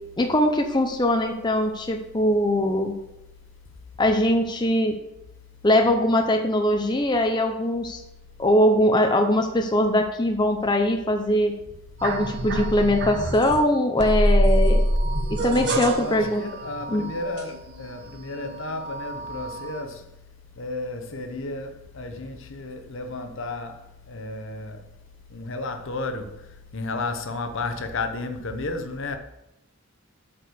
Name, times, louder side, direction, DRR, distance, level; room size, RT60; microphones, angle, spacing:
voice 1, 0.2-2.9 4.0-5.0 5.6-8.0 8.4-11.5 12.0-14.8 15.4-16.4 16.9-17.0, left 1 dB, 20° left, 0.7 m, -21 dB
sound 1, 12.0-13.6 14.0-18.0 18.3-19.8, right 1 dB, 50° right, 1.0 m, -25 dB
voice 2, 15.4-20.1 20.6-24.8 25.3-29.2, left 2 dB, 60° left, 0.9 m, -33 dB
8.6 x 4.7 x 6.9 m
head